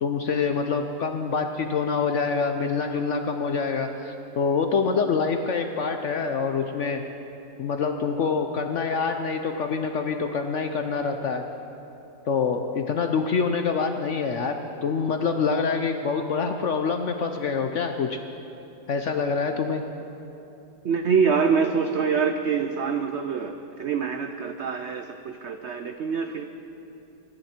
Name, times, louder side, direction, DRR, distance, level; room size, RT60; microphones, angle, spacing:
voice 1, 0.0-7.0 7.6-11.4 12.2-14.6 14.8-18.2 18.9-19.8, left 5 dB, 65° left, 6 dB, 0.7 m, -26 dB
voice 2, 20.8-23.5 23.8-26.5, right 6 dB, 75° right, 7 dB, 0.6 m, -25 dB
24.0 x 11.0 x 4.4 m, 2.9 s
omnidirectional pair, 1.9 m